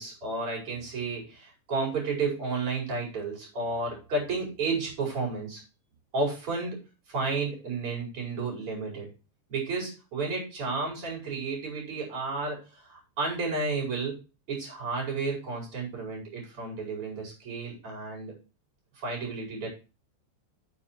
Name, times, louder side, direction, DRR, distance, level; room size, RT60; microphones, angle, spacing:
voice 1, 0.0-5.6 6.1-6.8 7.1-9.1 9.5-14.2 14.5-18.3 19.0-19.7, right 3 dB, 40° right, -2 dB, 5.6 m, -32 dB
9.0 x 7.4 x 4.3 m, 0.30 s
omnidirectional pair, 3.9 m